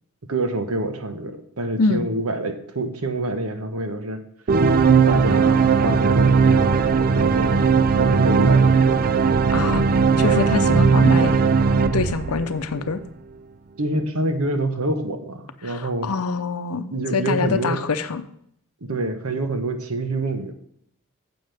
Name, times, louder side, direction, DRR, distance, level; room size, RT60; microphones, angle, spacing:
voice 1, 0.3-4.2 5.1-6.8 7.1-7.6 8.0-9.0 13.8-16.1 16.9-17.8 18.8-20.5, right 2 dB, 80° right, 7 dB, 1.2 m, -26 dB
sound 1, 4.5-12.9, right 5 dB, 40° right, 0.4 m, -18 dB
voice 2, 9.5-9.9 10.2-11.4 11.9-13.0 15.6-18.2, left 4 dB, 85° left, 9 dB, 0.7 m, -25 dB
9.1 x 7.7 x 3.4 m, 0.69 s
head